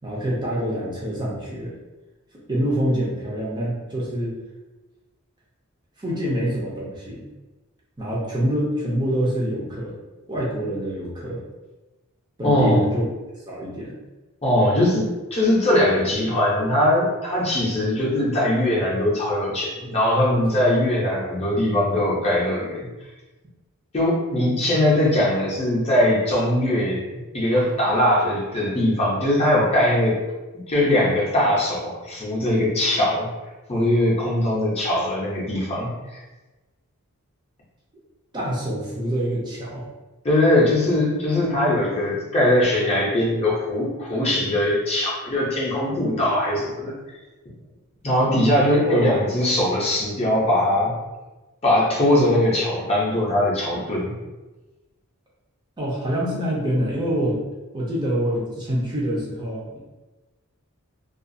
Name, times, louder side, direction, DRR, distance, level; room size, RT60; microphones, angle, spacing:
voice 1, 0.0-1.7 2.5-4.4 6.0-7.2 8.0-9.9 10.3-11.4 12.4-13.0 13.5-13.9 38.3-39.8 48.8-49.1 55.8-57.4 57.7-59.8, right 1 dB, 20° right, -6 dB, 0.5 m, -25 dB
voice 2, 12.4-12.8 14.4-15.0 15.3-22.8 23.9-27.0 27.3-30.1 30.5-33.3 33.7-36.2 40.2-47.0 48.0-50.9 51.6-54.1, left 1 dB, 30° left, -5 dB, 0.6 m, -21 dB
2.3 x 2.3 x 2.6 m, 1.1 s
head